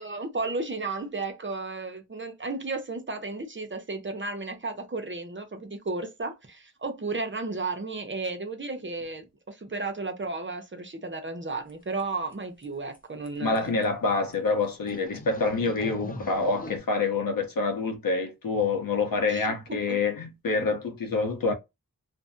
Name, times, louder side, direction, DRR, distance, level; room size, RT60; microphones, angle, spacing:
voice 1, 0.0-13.8 19.3-20.0, right 3 dB, 35° right, 0.7 m, -34 dB
sound 1, 11.7-11.8 12.0-12.3 12.6-12.7 12.9-13.0 13.3-13.4 13.5-13.8 14.3-14.4 14.9-16.8, left 2 dB, 25° left, 0.5 m, -40 dB
voice 2, 13.4-21.5, left 3 dB, 80° left, 0.8 m, -27 dB
2.5 x 2.1 x 2.6 m
wide cardioid pair, 65°, 34 cm